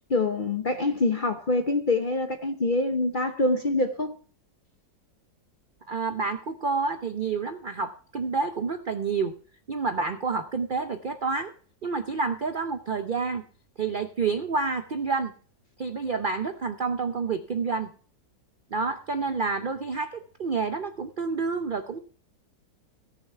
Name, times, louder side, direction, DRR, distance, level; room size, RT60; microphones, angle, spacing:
voice 1, 0.1-4.2, left 2 dB, 45° left, 0.6 m, -25 dB
voice 2, 5.9-9.3 9.7-11.5 11.8-13.4 13.8-15.3 15.8-17.9 18.7-22.0, right 4 dB, 85° right, 0.4 m, -29 dB
17.5 x 6.7 x 4.5 m
omnidirectional pair, 1.9 m